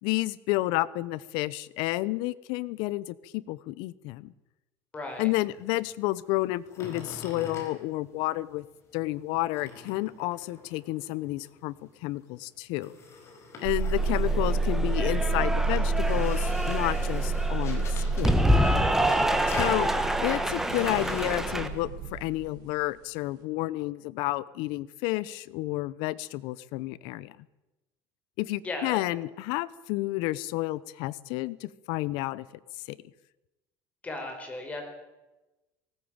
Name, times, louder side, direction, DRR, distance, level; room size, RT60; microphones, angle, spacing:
voice 1, 0.0-4.3 5.2-8.7 8.9-11.7 12.0-13.0 13.6-18.5 19.6-19.9 20.2-27.4 28.4-32.5 32.9-33.0, left 18 dB, 65° left, 20 dB, 0.9 m, -31 dB
voice 2, 4.9-5.3 19.3-19.7 28.6-29.0 34.0-34.8, left 2 dB, 15° left, 4 dB, 4.6 m, -35 dB
sound 1, 5.1-8.6 8.9-21.8, left 4 dB, 30° left, 4.9 m, -46 dB
sound 2, 13.6-22.5, right 3 dB, 55° right, 3.8 m, -29 dB
Cheering / Applause, 14.0-21.7, equal, 5° right, 1.4 m, -28 dB
19.0 x 18.0 x 8.9 m, 1.0 s
cardioid pair, 170°, 9 cm